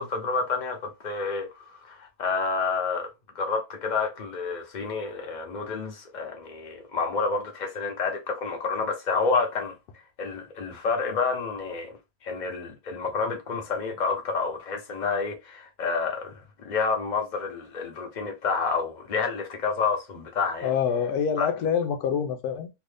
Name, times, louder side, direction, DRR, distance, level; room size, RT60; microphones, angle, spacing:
voice 1, 0.0-3.1 3.3-9.8 10.2-12.0 12.2-20.7 21.4-21.5, left 4 dB, 35° left, 0.9 m, -29 dB
voice 2, 20.6-22.7, left 7 dB, 90° left, 1.1 m, -26 dB
2.9 x 2.5 x 3.3 m
omnidirectional pair, 1.6 m